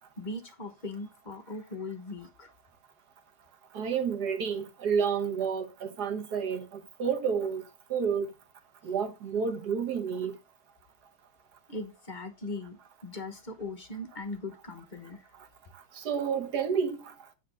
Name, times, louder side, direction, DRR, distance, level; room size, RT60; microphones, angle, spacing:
voice 1, 0.2-2.5 11.7-15.2, left 2 dB, 35° left, 0.8 m, -39 dB
voice 2, 3.7-7.6 7.9-8.3 8.8-10.4 15.9-17.1, right 6 dB, 55° right, 1.4 m, -30 dB
9.2 x 3.8 x 5.4 m
omnidirectional pair, 2.3 m